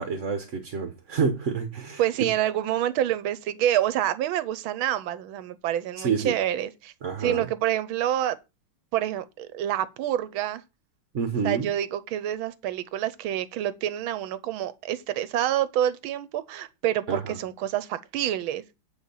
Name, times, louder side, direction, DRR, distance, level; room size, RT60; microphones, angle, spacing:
voice 1, 0.0-2.3 6.0-6.3 7.0-7.5 11.1-11.7 17.1-17.4, right 5 dB, 50° right, 0.9 m, -28 dB
voice 2, 2.0-6.9 7.2-8.4 8.9-10.6 11.4-18.6, right 12 dB, 75° right, 1.4 m, -27 dB
8.9 x 4.5 x 5.5 m
omnidirectional pair, 2.4 m